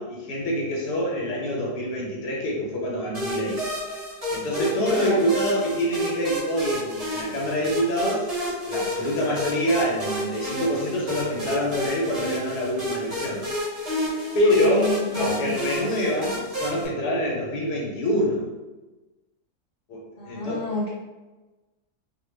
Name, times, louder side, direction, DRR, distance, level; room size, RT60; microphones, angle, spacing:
voice 1, 0.0-3.6 4.3-8.3 8.7-13.4 14.3-18.5 19.9-20.7, equal, 80° left, -3 dB, 1.4 m, -26 dB
sound 1, 3.1-16.9, equal, 35° right, 0.6 m, -31 dB
voice 2, 4.5-5.3 14.3-15.5 20.2-20.9, left 1 dB, 40° left, -9 dB, 0.7 m, -29 dB
3.0 x 2.3 x 3.2 m, 1.1 s
omnidirectional pair, 1.7 m